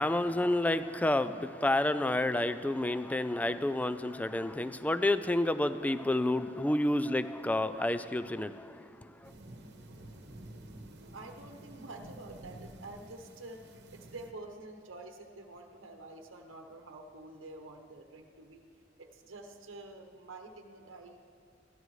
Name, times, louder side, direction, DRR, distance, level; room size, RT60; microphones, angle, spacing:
voice 1, 0.0-9.3, left 1 dB, 10° left, 12 dB, 0.3 m, -30 dB
sound 1, 9.2-14.3, right 1 dB, 60° right, 1.1 m, -50 dB
voice 2, 11.0-18.6 19.0-21.2, right 2 dB, 85° right, 3 dB, 1.0 m, -48 dB
21.5 x 14.5 x 3.2 m, 2.4 s
head